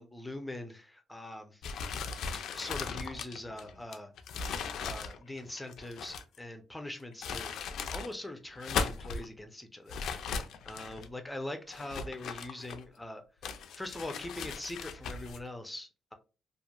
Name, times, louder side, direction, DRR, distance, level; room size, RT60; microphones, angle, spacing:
voice 1, 0.0-1.6 2.5-4.1 4.8-7.6 7.9-10.0 10.7-13.2 13.7-16.1, left 1 dB, 5° left, 0.4 m, -42 dB
sound 1, 1.6-6.4 7.0-8.1 8.5-9.3 9.9-11.1 11.7-13.0 13.4-15.4, left 5 dB, 75° left, 0.3 m, -38 dB
2.9 x 2.4 x 2.2 m
cardioid pair, 145°, 0 cm